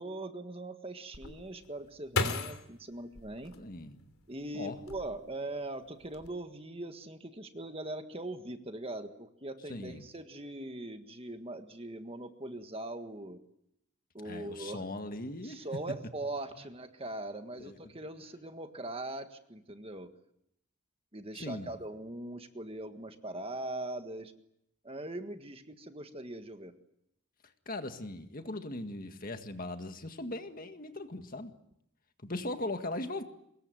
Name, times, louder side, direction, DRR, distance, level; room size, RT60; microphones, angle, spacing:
voice 1, 0.0-3.5 4.3-13.4 14.1-14.8 15.4-20.1 21.1-24.3 24.8-26.7, right 2 dB, 25° right, 7 dB, 1.6 m, -41 dB
sound 1, 1.1-4.2 4.7-5.5 5.8-6.3, left 3 dB, 75° left, 3.1 m, -36 dB
voice 2, 3.6-4.0 4.5-4.8 9.7-10.1 14.2-15.7 17.6-17.7 21.3-21.8 27.7-31.5 32.2-33.2, left 2 dB, 40° left, 7 dB, 1.8 m, -39 dB
24.5 x 21.5 x 9.1 m, 0.77 s
head